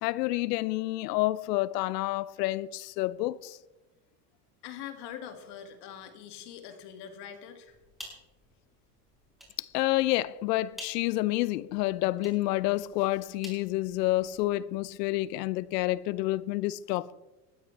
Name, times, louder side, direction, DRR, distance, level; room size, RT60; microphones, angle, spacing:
voice 1, 0.0-3.6 9.6-17.1, left 17 dB, 80° left, 0.7 m, -29 dB
voice 2, 4.6-7.8, left 9 dB, 55° left, 2.3 m, -43 dB
sound 1, 7.7-14.5, right 1 dB, ahead, 5.7 m, -52 dB
19.5 x 12.5 x 3.3 m
supercardioid pair, 105°, 48 cm